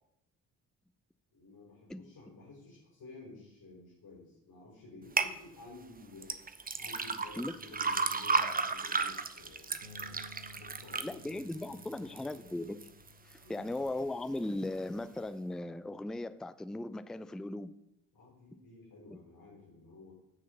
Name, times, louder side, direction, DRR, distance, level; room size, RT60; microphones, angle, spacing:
voice 1, 1.3-6.3 6.7-11.6 13.4-13.7 18.1-20.1, left 3 dB, 50° left, 5.4 m, -53 dB
sound 1, 5.2-5.3 6.2-12.4 12.8-13.3 13.8-13.9, right 4 dB, 20° right, 0.9 m, -33 dB
Bass guitar, 9.8-16.1, left 3 dB, 85° right, 1.6 m, -57 dB
voice 2, 11.0-12.8 13.2-17.7, left 1 dB, ahead, 0.5 m, -38 dB
15.5 x 6.5 x 5.3 m
figure-of-eight pair, 45°, 48 cm